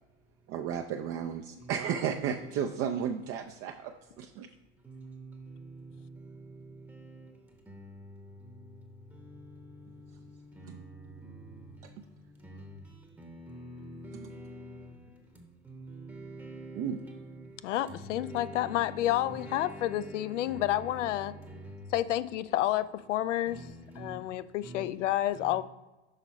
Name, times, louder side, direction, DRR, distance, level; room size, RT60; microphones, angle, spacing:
voice 1, 0.5-4.5 10.6-10.8 16.7-17.0, right 8 dB, 40° right, 5 dB, 0.5 m, -33 dB
voice 2, 4.8-14.8 15.6-21.9 23.5-24.2 24.6-24.9 25.3-25.5, right 1 dB, 10° right, 3 dB, 0.8 m, -47 dB
voice 3, 17.6-21.3 21.9-23.6 24.0-25.6, left 13 dB, 85° left, 15 dB, 0.5 m, -30 dB
6.4 x 5.3 x 4.1 m, 1.1 s
hypercardioid pair, 100°, 36 cm